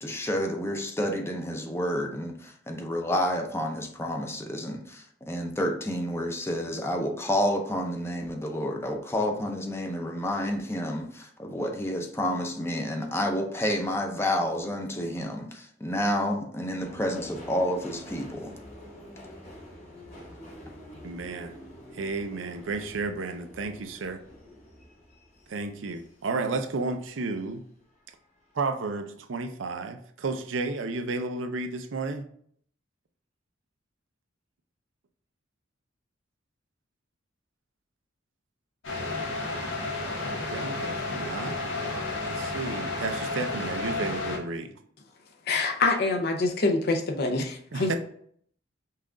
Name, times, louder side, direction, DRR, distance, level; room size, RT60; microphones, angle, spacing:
voice 1, 0.0-18.5, equal, 15° left, 3 dB, 0.6 m, -29 dB
Subway metro underground, 16.8-27.5 27.9-28.6 28.9-29.0, left 1 dB, 35° left, 1.5 m, -47 dB
voice 2, 21.0-21.5 21.9-24.2 25.5-27.6 28.5-32.3 40.2-41.6 42.2-44.8 47.7-48.0, right 3 dB, 75° right, 7 dB, 0.5 m, -32 dB
sound 1, 38.8-44.4, left 2 dB, 85° left, 1.2 m, -32 dB
voice 3, 45.5-48.0, left 3 dB, 55° left, 4 dB, 0.7 m, -25 dB
5.6 x 2.5 x 3.7 m, 0.62 s
head